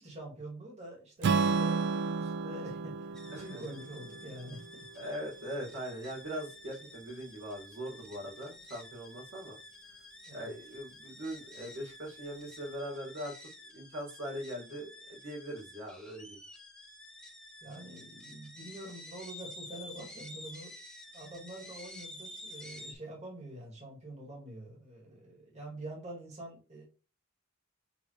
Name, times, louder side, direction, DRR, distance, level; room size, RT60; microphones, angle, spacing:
voice 1, 0.0-4.9 10.2-10.5 17.6-20.7 21.1-26.8, right 1 dB, 35° right, -3 dB, 1.7 m, -46 dB
Strum, 1.2-5.4, right 4 dB, 60° right, 0.3 m, -32 dB
sound 1, 3.1-22.9, left 1 dB, 5° left, 0.7 m, -50 dB
voice 2, 3.3-3.6 4.9-9.6 10.3-13.3 13.7-16.4, equal, 75° right, -3 dB, 1.9 m, -41 dB
6.9 x 2.5 x 3.1 m, 0.35 s
head